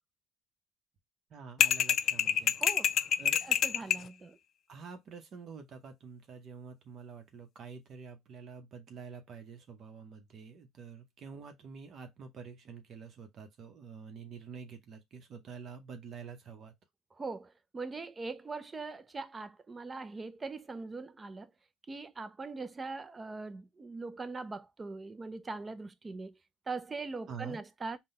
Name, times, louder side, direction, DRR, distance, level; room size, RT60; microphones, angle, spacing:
voice 1, 1.3-2.6 3.2-3.4 4.7-16.7 27.3-27.6, right 5 dB, 50° right, 0.8 m, -47 dB
sound 1, 1.6-4.1, left 9 dB, 55° left, 0.3 m, -27 dB
voice 2, 2.6-2.9 3.4-4.4 17.2-21.5 21.9-26.3 26.7-28.0, right 3 dB, 25° right, 0.5 m, -41 dB
3.8 x 2.2 x 4.1 m
supercardioid pair, 90°, 0 cm